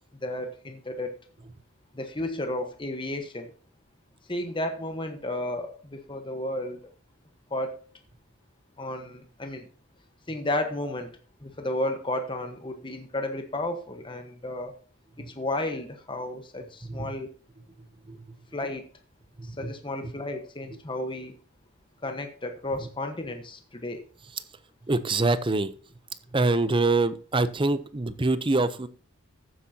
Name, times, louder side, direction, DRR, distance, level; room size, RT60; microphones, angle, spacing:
voice 1, 0.2-1.2 1.9-3.5 4.3-6.8 7.5-7.7 8.8-9.6 10.3-11.1 11.4-14.7 15.2-17.3 18.5-18.9 19.4-21.3 22.0-24.0, left 1 dB, 20° left, 5 dB, 1.1 m, -32 dB
voice 2, 16.8-17.1 18.1-18.2 19.4-19.7 22.8-22.9 24.9-25.7 26.3-28.9, right 2 dB, 25° right, 14 dB, 0.6 m, -25 dB
14.5 x 8.4 x 2.8 m, 0.40 s
head